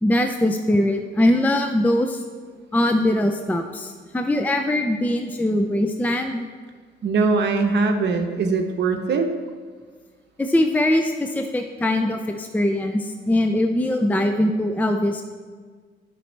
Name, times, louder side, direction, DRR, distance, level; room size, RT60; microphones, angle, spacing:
voice 1, 0.0-2.2 2.7-6.5 10.4-15.2, left 1 dB, 10° left, 5 dB, 0.5 m, -21 dB
voice 2, 7.0-9.3, right 4 dB, 60° right, 5 dB, 1.0 m, -21 dB
11.0 x 5.3 x 3.3 m, 1.5 s
cardioid pair, 90°, 20 cm